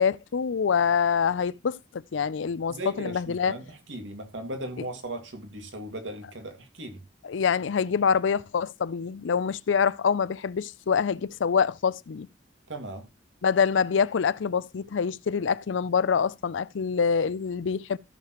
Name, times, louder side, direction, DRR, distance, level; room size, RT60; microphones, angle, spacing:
voice 1, 0.0-3.5 7.2-12.3 13.4-18.0, left 6 dB, 80° left, 0.5 m, -25 dB
voice 2, 2.7-7.0 12.7-13.1, right 1 dB, 80° right, 2.2 m, -37 dB
14.5 x 6.8 x 3.0 m
head